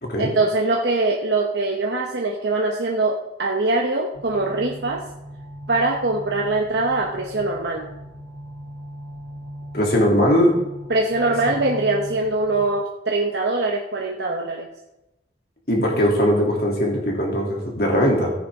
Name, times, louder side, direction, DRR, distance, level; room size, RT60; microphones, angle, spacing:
voice 1, 0.2-5.0 5.7-7.8 10.9-14.7, right 2 dB, 65° right, 0 dB, 1.0 m, -22 dB
sound 1, 4.1-12.7, equal, 80° right, 2.9 m, -38 dB
voice 2, 9.7-10.6 15.7-18.3, equal, 55° left, -1 dB, 3.0 m, -20 dB
15.0 x 9.3 x 3.7 m, 0.96 s
head